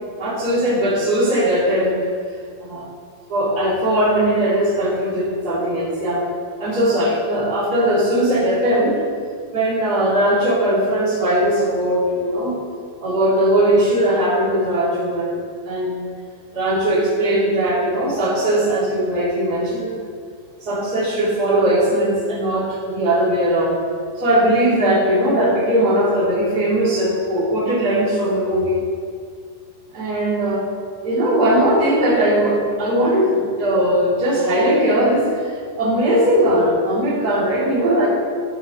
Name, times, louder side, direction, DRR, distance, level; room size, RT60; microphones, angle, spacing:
voice 1, 0.2-2.0 2.6-2.8 3.3-6.3 6.6-9.0 9.5-12.5 13.0-15.4 15.6-16.1 16.5-20.0 20.6-23.8 24.2-28.8 29.9-30.6 31.0-38.1, right 1 dB, 25° right, -8 dB, 2.6 m, -19 dB
13.5 x 9.2 x 3.0 m, 2.1 s
omnidirectional pair, 4.8 m